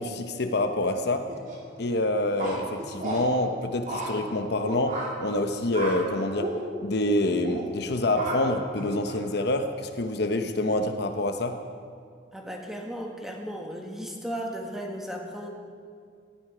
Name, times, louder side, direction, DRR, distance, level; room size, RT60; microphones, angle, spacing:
voice 1, 0.0-1.3 1.8-11.6, left 1 dB, 60° left, 6 dB, 0.9 m, -27 dB
sound 1, 1.3-1.6 2.4-3.2 3.9-4.1 4.6-5.1 5.7-5.9 6.4-6.5 7.3-7.6 8.1-8.4 8.7-9.3, right 2 dB, 45° right, 3.1 m, -33 dB
voice 2, 12.3-15.5, equal, ahead, 0 dB, 1.6 m, -35 dB
17.5 x 13.0 x 5.0 m, 2.2 s
head